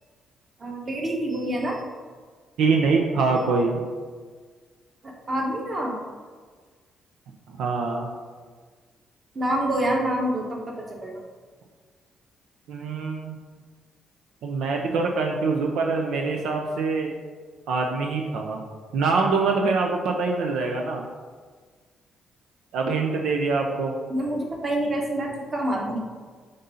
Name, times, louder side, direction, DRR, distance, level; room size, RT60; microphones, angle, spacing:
voice 1, 0.6-1.8 5.3-6.0 9.3-11.2 24.1-26.0, right 1 dB, 35° right, 0 dB, 1.2 m, -27 dB
voice 2, 2.6-3.8 7.5-8.1 12.7-13.3 14.4-17.1 17.7-18.6 18.9-21.1 22.7-24.0, right 4 dB, 85° right, 2 dB, 0.6 m, -24 dB
6.5 x 2.7 x 5.5 m, 1.5 s
cardioid pair, 90°, 0 cm